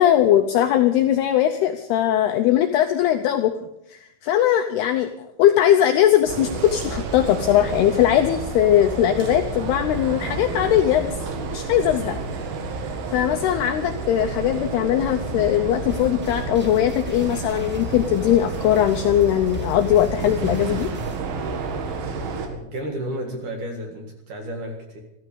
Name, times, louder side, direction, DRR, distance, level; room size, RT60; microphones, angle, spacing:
voice 1, 0.0-3.5 3.9-11.1 11.5-12.2 13.1-20.9, left 11 dB, 85° left, 7 dB, 2.2 m, -20 dB
sound 1, 6.3-22.5, right 3 dB, 75° right, 4.2 m, -30 dB
sound 2, 15.9-21.2, left 1 dB, 15° right, 0.3 m, -40 dB
voice 2, 22.5-25.0, right 1 dB, 55° right, 2 dB, 2.7 m, -32 dB
14.5 x 14.5 x 6.9 m, 0.82 s
omnidirectional pair, 5.6 m